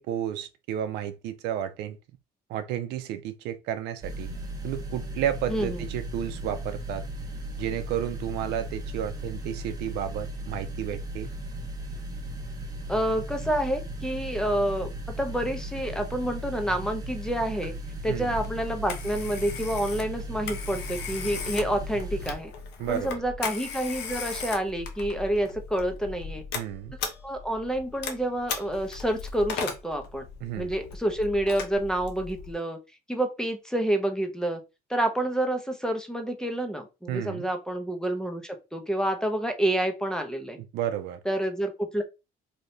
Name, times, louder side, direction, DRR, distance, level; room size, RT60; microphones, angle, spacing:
voice 1, 0.0-2.0 2.5-4.3 4.6-7.0 7.6-11.3 18.1-18.3 22.8-23.2 26.5-26.9 30.4-30.7 37.1-37.5 40.7-41.2, right 10 dB, 85° right, 0.5 m, -32 dB
sound 1, 4.0-22.3, right 1 dB, 20° right, 1.1 m, -36 dB
voice 2, 5.5-5.8 12.9-14.9 15.2-17.7 18.0-22.5 22.9-26.4 27.2-30.2 30.6-32.8 33.1-34.6 34.9-40.6 41.3-42.0, right 1 dB, 5° left, 0.6 m, -28 dB
Telephone, 18.3-32.5, left 5 dB, 80° left, 0.8 m, -38 dB
2.8 x 2.6 x 3.1 m
cardioid pair, 110°, 17 cm